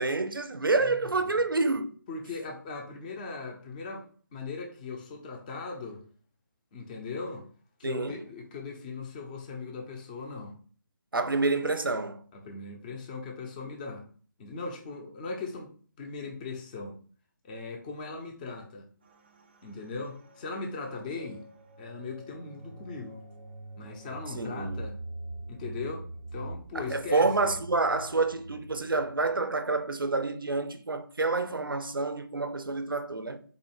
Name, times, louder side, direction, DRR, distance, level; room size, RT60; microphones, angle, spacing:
voice 1, 0.0-1.9 7.8-8.2 11.1-12.2 24.4-24.8 26.7-33.4, right 3 dB, 90° right, 0.6 m, -28 dB
voice 2, 2.1-6.0 6.7-7.5 7.8-10.6 12.3-14.1 14.4-15.7 16.0-17.0 17.4-18.9 19.6-21.4 21.8-23.2 23.8-25.0 25.5-26.0 26.3-27.5, left 4 dB, 25° left, 0.8 m, -39 dB
sound 1, 19.0-29.4, right 2 dB, 30° right, 0.5 m, -44 dB
4.2 x 2.7 x 4.6 m
figure-of-eight pair, 155°, 11 cm